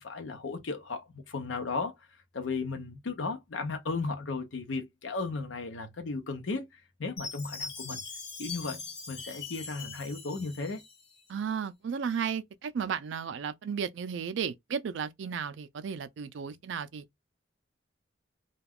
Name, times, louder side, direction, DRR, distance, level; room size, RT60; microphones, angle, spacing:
voice 1, 0.0-1.9 2.3-6.7 7.0-8.0 8.4-10.8, left 3 dB, 85° left, 0.7 m, -35 dB
Chime, 7.2-11.3, left 4 dB, 55° left, 1.0 m, -42 dB
voice 2, 11.3-17.0, right 7 dB, 75° right, 0.4 m, -34 dB
2.3 x 2.2 x 3.4 m
head